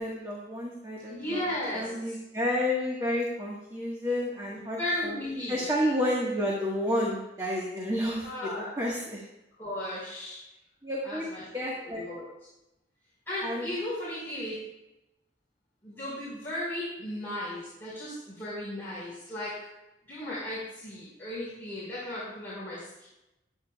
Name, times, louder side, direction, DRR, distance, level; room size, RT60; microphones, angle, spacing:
voice 1, 0.0-1.5 1.7-9.2 9.9-10.2 10.8-11.3 11.5-12.0 13.4-13.7, left 1 dB, 20° right, -4 dB, 1.6 m, -31 dB
voice 2, 1.1-2.1 4.5-5.6 8.2-8.7 9.6-10.4 11.0-11.4 11.8-12.2 13.2-14.6 15.8-19.7 20.1-23.1, left 1 dB, 10° left, -12 dB, 4.9 m, -35 dB
22.0 x 9.0 x 2.4 m, 0.93 s
head